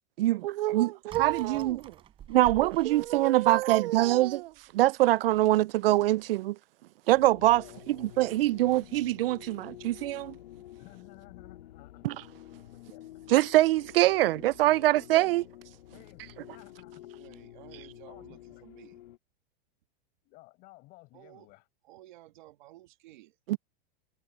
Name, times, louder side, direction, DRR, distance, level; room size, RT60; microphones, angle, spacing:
voice 1, 0.2-1.9 2.3-6.6 7.1-10.3 12.0-12.2 13.3-15.4 23.5-23.6, right 16 dB, 75° right, 0.5 m, -24 dB
sound 1, 1.1-3.6 4.2-4.3 4.6-4.7 5.3-5.6 6.0-6.2, right 10 dB, 20° right, 5.8 m, -48 dB
sound 2, 7.1-19.2, left 13 dB, 80° left, 2.9 m, -50 dB
voice 2, 10.8-12.1 12.7-13.0 14.1-14.4 14.7-15.5 15.9-17.1 18.1-18.9 20.2-21.6, left 21 dB, 30° left, 6.1 m, -55 dB
voice 3, 17.1-19.0 21.1-21.5 21.8-23.4, right 16 dB, 50° right, 1.9 m, -54 dB
supercardioid pair, 175°, 29 cm